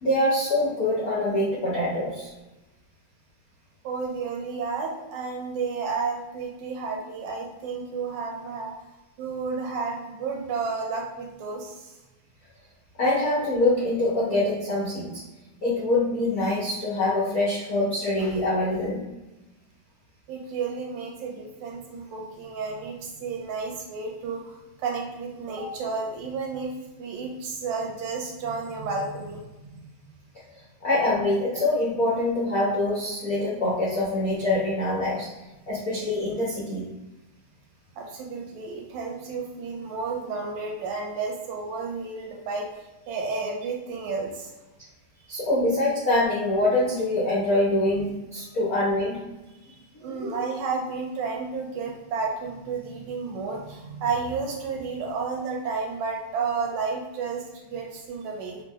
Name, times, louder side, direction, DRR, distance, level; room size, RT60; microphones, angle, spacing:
voice 1, 0.0-2.3 13.0-15.2 15.6-19.0 30.8-35.3 35.7-36.8 45.3-49.2 50.1-50.4, left 1 dB, 75° left, -8 dB, 0.8 m, -24 dB
voice 2, 3.8-8.7 9.2-11.9 20.3-26.7 27.0-29.4 29.7-29.9 38.0-42.7 43.1-44.5 49.6-58.6, right 4 dB, 80° right, 0 dB, 2.1 m, -32 dB
5.6 x 2.2 x 3.1 m, 1.1 s
omnidirectional pair, 3.4 m